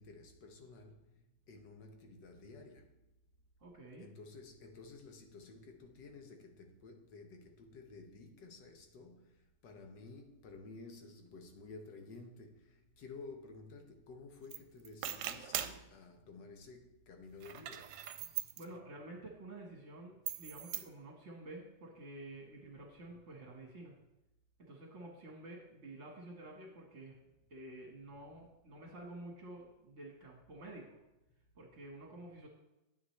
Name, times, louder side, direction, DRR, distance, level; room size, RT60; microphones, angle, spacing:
voice 1, 0.0-3.0 4.0-18.0 31.4-31.5, left 3 dB, 75° left, 1.7 m, -53 dB
voice 2, 3.6-4.1 18.6-23.9 24.6-27.2 27.5-31.0 31.5-32.5, right 2 dB, 45° right, 1.6 m, -50 dB
sound 1, 14.5-14.6 14.9-15.8 17.4-18.7 20.3-20.9, right 11 dB, 75° right, 1.2 m, -40 dB
9.9 x 8.7 x 3.2 m
omnidirectional pair, 2.0 m